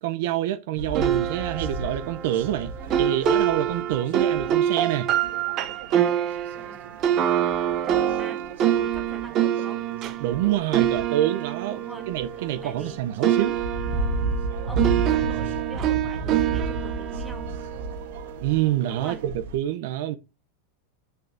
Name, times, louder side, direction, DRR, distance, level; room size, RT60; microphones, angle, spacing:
voice 1, 0.0-2.7 3.0-5.1 10.2-11.8 12.1-13.6 18.4-20.2, right 13 dB, 50° right, 0.8 m, -26 dB
sound 1, 0.8-19.6, right 2 dB, 65° right, 2.1 m, -34 dB
sound 2, 0.9-12.9 13.2-18.4, right 10 dB, 25° right, 1.0 m, -26 dB
voice 2, 6.6-6.9 7.2-9.8 11.7-13.0 14.6-17.5 18.9-19.2, right 1 dB, 5° right, 1.6 m, -44 dB
8.4 x 6.6 x 3.5 m
supercardioid pair, 175°, 0 cm